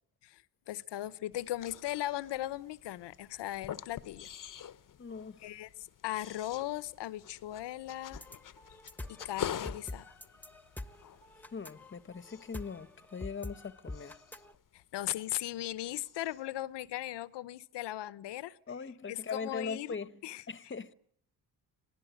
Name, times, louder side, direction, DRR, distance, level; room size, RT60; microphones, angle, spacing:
voice 1, 0.2-4.3 5.4-8.2 9.1-10.1 14.7-18.6 19.1-20.0 20.2-20.4, left 14 dB, 80° left, 1.0 m, -38 dB
sound 1, 1.3-15.6 15.9-16.5, left 9 dB, 50° left, 0.9 m, -47 dB
voice 2, 5.0-5.5 11.5-14.2 18.7-20.2 20.5-20.9, left 5 dB, 30° left, 1.1 m, -40 dB
sound 2, 8.1-14.5, left 2 dB, 5° left, 1.3 m, -46 dB
26.5 x 18.0 x 8.2 m
cardioid pair, 75°, 41 cm